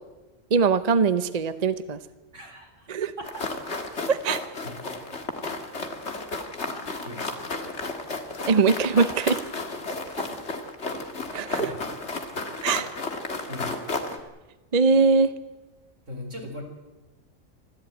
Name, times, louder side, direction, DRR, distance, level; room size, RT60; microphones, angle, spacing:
voice 1, 0.5-2.0 2.9-3.1 4.1-4.4 8.5-9.4 11.3-11.7 12.6-12.9 14.7-15.3, right 4 dB, 40° right, 12 dB, 0.8 m, -21 dB
voice 2, 2.3-2.9 4.6-4.9 7.0-7.4 11.6-11.9 13.5-13.9 16.1-16.6, left 1 dB, 70° right, 3 dB, 4.6 m, -39 dB
sound 1, 3.2-14.2, left 3 dB, 60° left, 2.3 m, -33 dB
25.5 x 14.5 x 9.1 m, 1.1 s
omnidirectional pair, 1.3 m